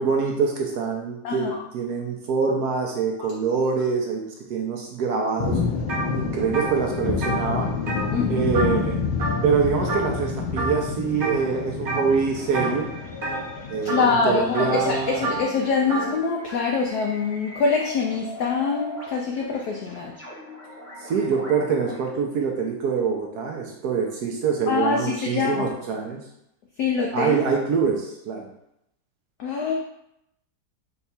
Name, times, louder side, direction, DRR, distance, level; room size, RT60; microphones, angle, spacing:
voice 1, 0.0-5.6 6.1-7.7 8.3-9.0 9.4-12.9 13.7-15.3 21.0-26.2 27.1-28.5, right 5 dB, 75° right, 1 dB, 0.9 m, -25 dB
voice 2, 1.2-1.6 3.2-3.3 8.1-8.5 13.8-20.1 24.7-25.7 26.8-27.4 29.4-29.7, left 5 dB, 70° left, 0 dB, 0.9 m, -24 dB
sound 1, 5.4-15.4, left 5 dB, 90° left, 1.5 m, -29 dB
sound 2, 5.9-6.1 6.4-8.9 9.2-9.6 9.9-10.2 10.6-11.4 11.9-12.2 12.5-16.1, right 2 dB, 40° right, 0.9 m, -30 dB
sound 3, 12.3-22.1, left 1 dB, 10° left, 0.7 m, -41 dB
5.6 x 2.3 x 4.1 m, 0.79 s
omnidirectional pair, 2.1 m